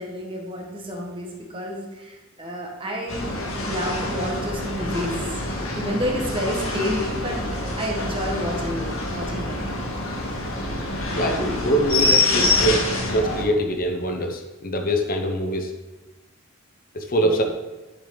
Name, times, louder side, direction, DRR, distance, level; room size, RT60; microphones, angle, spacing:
voice 1, 0.0-3.3 3.6-5.4 5.7-7.4 7.7-9.7 17.2-17.4, equal, 25° right, 0 dB, 1.6 m, -29 dB
sound 1, 3.1-13.4, left 2 dB, 80° left, 1.9 m, -26 dB
voice 2, 11.1-15.7 16.9-17.4, right 1 dB, 45° left, 5 dB, 0.9 m, -24 dB
10.5 x 6.8 x 4.0 m, 1.1 s
head